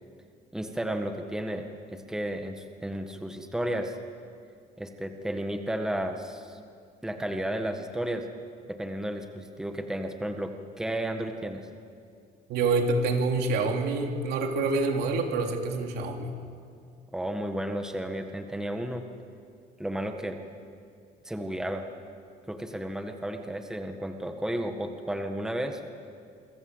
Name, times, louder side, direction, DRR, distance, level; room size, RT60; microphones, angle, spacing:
voice 1, 0.5-3.9 4.8-6.6 7.0-8.3 8.7-11.7 17.1-19.0 19.8-20.4 21.2-21.8 22.5-25.8, right 1 dB, 5° right, 5 dB, 1.6 m, -33 dB
voice 2, 12.5-16.4, right 3 dB, 75° right, 3 dB, 3.4 m, -27 dB
27.0 x 24.5 x 8.1 m, 2.3 s
cardioid pair, 155°, 17 cm